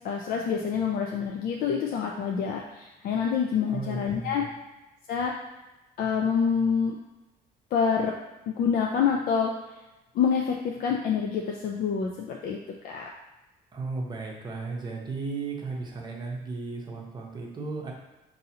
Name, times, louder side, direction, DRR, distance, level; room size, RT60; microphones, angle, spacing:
voice 1, 0.0-4.4 5.1-5.3 6.0-7.0 7.7-8.1 8.5-9.5 10.1-12.6 12.8-13.1, left 6 dB, 60° left, 0 dB, 0.4 m, -27 dB
voice 2, 3.7-4.5 13.7-17.9, right 3 dB, 25° right, -1 dB, 0.8 m, -35 dB
5.3 x 2.7 x 2.8 m, 1.0 s
cardioid pair, 140°, 17 cm